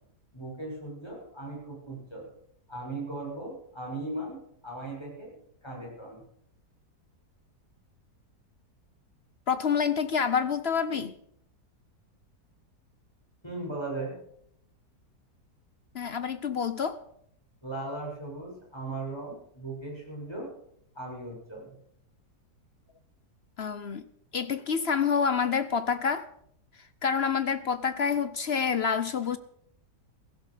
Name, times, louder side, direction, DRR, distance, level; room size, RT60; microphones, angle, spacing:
voice 1, 0.3-2.2 2.7-5.3 5.6-6.2 13.4-14.2 17.6-20.5 20.9-21.7, right 2 dB, 15° left, 7.0 m, -38 dB
voice 2, 9.5-11.1 15.9-17.0 23.6-24.0 24.3-26.3 27.0-29.4, left 6 dB, 50° left, 0.8 m, -27 dB
16.0 x 16.0 x 5.0 m
omnidirectional pair, 1.8 m